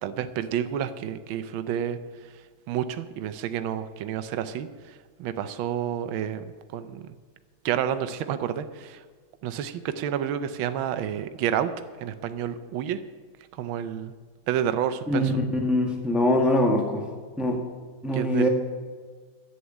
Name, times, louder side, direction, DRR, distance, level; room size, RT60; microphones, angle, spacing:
voice 1, 0.0-2.0 2.7-7.1 7.6-9.0 9.4-11.7 12.0-13.0 13.6-14.1 14.5-15.4 18.1-18.5, right 9 dB, 80° right, 11 dB, 1.5 m, -29 dB
voice 2, 15.6-17.0 17.4-17.6 18.0-18.5, left 1 dB, ahead, 2 dB, 1.4 m, -23 dB
11.0 x 8.4 x 8.5 m, 1.5 s
omnidirectional pair, 2.2 m